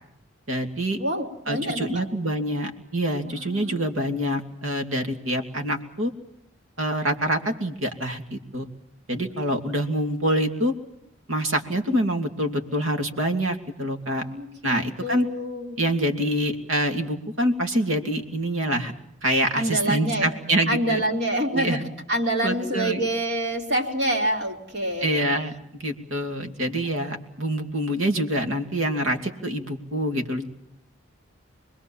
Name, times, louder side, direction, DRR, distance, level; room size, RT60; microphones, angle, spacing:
voice 1, 0.5-1.0 1.5-6.1 6.8-8.7 9.1-10.7 11.3-14.2 14.6-15.3 15.8-18.9 19.2-21.0 21.5-21.9 22.4-23.0 25.0-30.5, right 1 dB, 80° right, 6 dB, 2.8 m, -26 dB
voice 2, 1.0-2.0 3.2-3.8 14.2-15.8 19.5-20.3 20.7-21.8 22.1-25.3, right 1 dB, 55° right, 2 dB, 3.7 m, -27 dB
27.5 x 21.0 x 7.3 m, 0.80 s
head